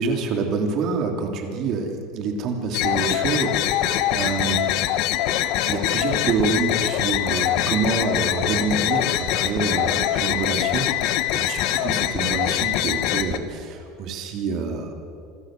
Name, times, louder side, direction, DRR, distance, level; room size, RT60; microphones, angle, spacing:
voice 1, 0.0-4.7 5.7-14.9, right 4 dB, 45° right, 4 dB, 3.0 m, -27 dB
sound 1, 2.7-13.4, left 13 dB, 60° left, 1.1 m, -23 dB
26.0 x 13.5 x 7.7 m, 2.5 s
supercardioid pair, 140°, 0 cm